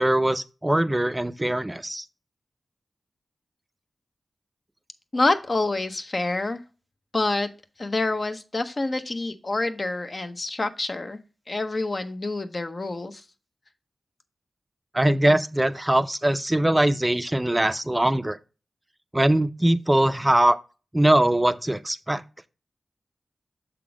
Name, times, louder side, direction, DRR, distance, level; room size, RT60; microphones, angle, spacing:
voice 1, 0.0-2.0 14.9-18.4 19.1-20.6 20.9-22.2, right 1 dB, 15° right, 0.5 m, -21 dB
voice 2, 5.1-6.6 7.1-7.5 7.8-11.2 11.5-13.2, left 2 dB, 40° left, 0.8 m, -27 dB
6.9 x 3.7 x 4.8 m
cardioid pair, 65°, 0 cm